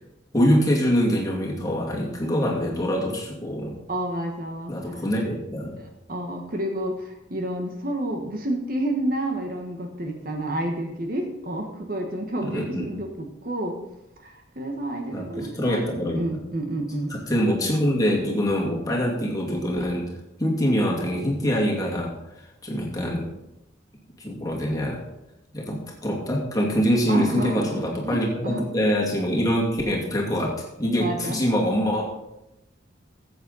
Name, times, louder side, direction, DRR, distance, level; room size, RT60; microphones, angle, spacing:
voice 1, 0.3-3.7 4.7-5.8 12.4-12.9 15.1-16.2 17.1-20.1 20.4-22.1 22.4-23.3 24.2-25.0 25.5-32.1, equal, 20° left, -3 dB, 2.4 m, -24 dB
voice 2, 3.9-5.0 6.1-13.8 14.2-17.2 27.1-28.6 30.9-31.4, right 1 dB, 45° right, 3 dB, 1.4 m, -30 dB
14.0 x 8.2 x 4.1 m, 0.91 s
head